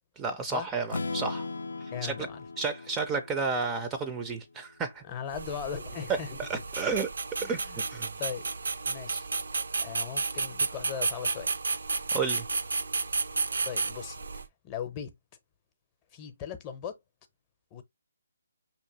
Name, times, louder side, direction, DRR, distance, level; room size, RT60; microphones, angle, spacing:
voice 1, 0.2-1.5 2.0-2.1 2.6-5.0 6.4-7.1 7.5-7.6 7.9-8.1 12.1-12.5, right 4 dB, 15° right, 0.4 m, -31 dB
Strum, 0.9-4.8, left 3 dB, 80° left, 0.4 m, -39 dB
voice 2, 1.9-2.4 5.0-6.4 7.4-7.8 8.2-8.5 8.8-9.3 9.8-11.5 13.6-15.1 16.1-17.0 17.7-17.8, left 8 dB, 25° left, 0.7 m, -38 dB
sound 1, 5.3-14.5, right 4 dB, 70° right, 0.4 m, -32 dB
5.5 x 2.9 x 2.7 m
figure-of-eight pair, 150°, 0 cm